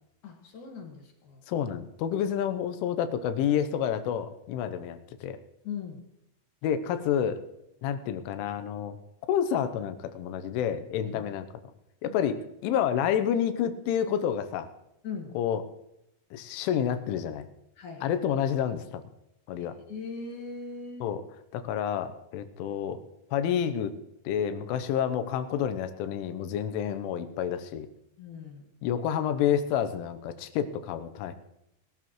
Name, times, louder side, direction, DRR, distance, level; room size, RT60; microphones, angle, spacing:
voice 1, 0.2-1.4 5.6-6.0 11.0-11.2 12.1-12.2 15.0-15.3 17.8-18.2 19.6-21.1 28.2-28.7, left 5 dB, 55° left, 2 dB, 2.4 m, -40 dB
voice 2, 1.5-5.4 6.6-7.4 7.8-9.0 9.3-11.5 12.0-14.7 15.4-15.6 16.3-17.5 18.0-19.0 19.5-19.8 21.0-21.2 21.5-23.0 23.3-23.9 24.3-27.9 28.8-31.3, left 9 dB, 85° left, 10 dB, 3.3 m, -29 dB
21.0 x 13.0 x 3.1 m, 0.85 s
omnidirectional pair, 5.5 m